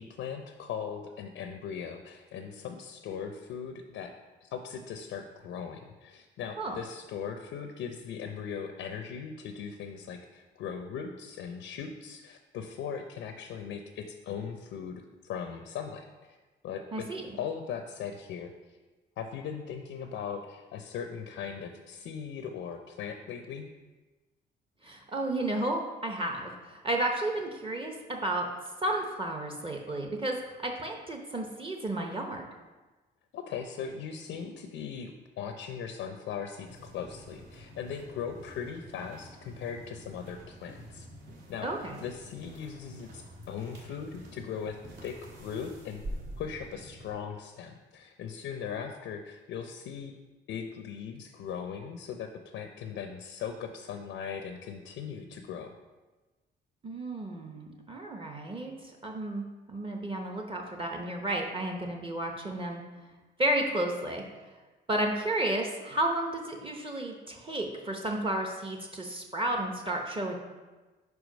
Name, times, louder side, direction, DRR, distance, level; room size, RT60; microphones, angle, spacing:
voice 1, 0.0-4.1 4.4-16.4 16.6-17.1 17.3-18.8 19.2-23.7 33.3-41.1 41.5-41.7 42.0-46.0 46.4-50.2 50.5-55.7, left 7 dB, 80° left, 5 dB, 0.5 m, -39 dB
voice 2, 16.9-17.4 24.8-28.5 28.8-32.5 41.6-42.0 56.8-62.8 63.4-64.2 64.9-70.4, right 1 dB, 25° right, 2 dB, 0.8 m, -32 dB
sound 1, 36.7-47.1, right 1 dB, 65° right, 1.4 m, -47 dB
4.8 x 4.6 x 5.1 m, 1.2 s
cardioid pair, 90°, 20 cm